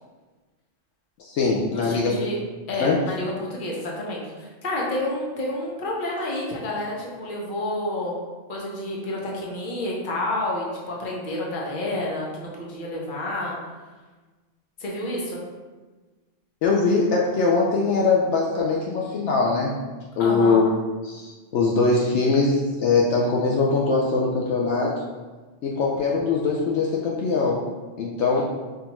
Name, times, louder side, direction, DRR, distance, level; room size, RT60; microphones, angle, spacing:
voice 1, 1.2-2.2 2.8-3.0 16.6-19.8 20.2-20.7 21.0-25.0 25.6-27.7 28.0-28.4, left 4 dB, 75° left, -3 dB, 0.8 m, -22 dB
voice 2, 1.7-2.4 2.7-8.2 8.5-13.6 14.8-15.4 20.2-20.6 28.3-28.4, left 1 dB, 45° left, -3 dB, 0.9 m, -29 dB
5.5 x 2.5 x 2.9 m, 1.3 s
omnidirectional pair, 1.2 m